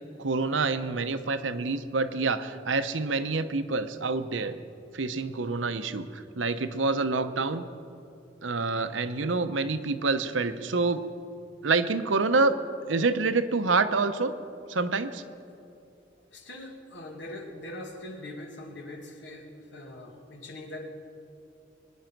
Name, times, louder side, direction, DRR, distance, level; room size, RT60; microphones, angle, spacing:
voice 1, 0.2-4.5 4.9-7.6 8.4-11.0 11.6-12.5 12.9-14.3 14.7-15.2, right 3 dB, 90° right, 10 dB, 0.8 m, -27 dB
voice 2, 16.3-20.9, left 1 dB, 75° left, 2 dB, 2.2 m, -42 dB
22.5 x 10.5 x 6.0 m, 2.6 s
head